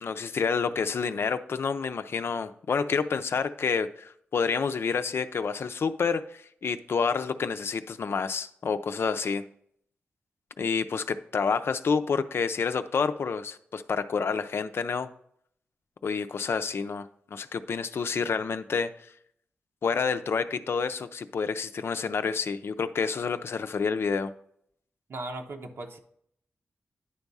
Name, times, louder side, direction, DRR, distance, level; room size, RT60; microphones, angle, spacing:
voice 1, 0.0-9.5 10.6-15.1 16.0-18.9 19.8-24.3, left 5 dB, 65° left, 10 dB, 0.5 m, -29 dB
voice 2, 25.1-26.0, right 2 dB, 65° right, 4 dB, 0.9 m, -37 dB
9.8 x 3.5 x 5.4 m, 0.69 s
cardioid pair, 60°, 4 cm